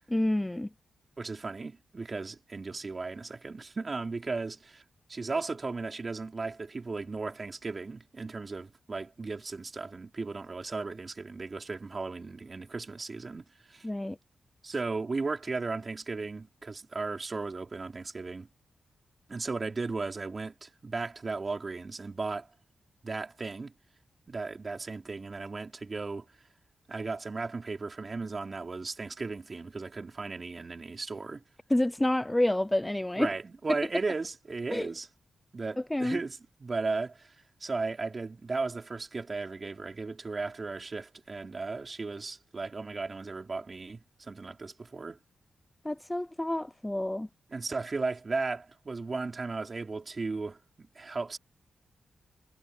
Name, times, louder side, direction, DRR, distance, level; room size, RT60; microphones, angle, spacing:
voice 1, 0.1-0.7 13.8-14.2 31.7-33.3 34.7-34.9 35.9-36.2 45.8-47.3, left 1 dB, 10° left, 0.4 m, -28 dB
voice 2, 1.2-4.8 5.1-13.9 14.6-18.5 19.3-22.5 23.0-23.7 24.3-26.2 26.9-31.4 33.2-35.1 35.5-45.2 47.5-51.4, right 3 dB, 35° right, 4.3 m, -36 dB
wide cardioid pair, 105°, 0 cm